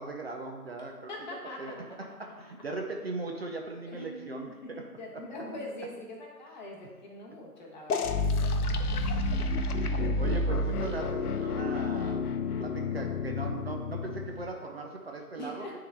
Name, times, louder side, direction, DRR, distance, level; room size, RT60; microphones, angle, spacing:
voice 1, 0.0-1.1 1.6-1.7 2.2-4.8 5.1-5.2 9.6-15.7, right 3 dB, 40° right, 1 dB, 0.6 m, -39 dB
voice 2, 1.1-1.8 3.9-8.1 8.3-8.4 9.9-10.3 15.4-15.7, left 1 dB, 30° left, -2 dB, 1.2 m, -42 dB
sound 1, 7.9-14.5, left 2 dB, 70° left, 0.7 m, -30 dB
9.7 x 3.9 x 3.5 m, 1.3 s
figure-of-eight pair, 150°, 47 cm